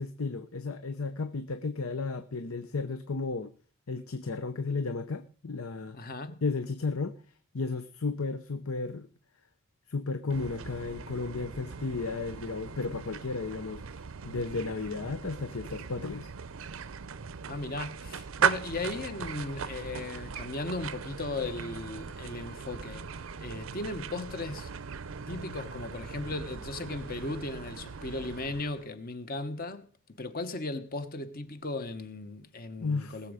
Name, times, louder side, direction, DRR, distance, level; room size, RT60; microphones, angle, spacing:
voice 1, 0.0-3.5 3.9-6.0 6.4-7.1 7.5-9.1 9.9-13.8 14.2-16.3 32.8-33.2, left 4 dB, 80° left, 0.8 m, -33 dB
voice 2, 5.9-6.4 17.5-24.7 25.3-29.9 30.2-33.3, left 2 dB, 45° left, 1.2 m, -37 dB
sound 1, 10.3-28.9, right 6 dB, 70° right, 0.6 m, -38 dB
19.5 x 7.2 x 5.0 m
head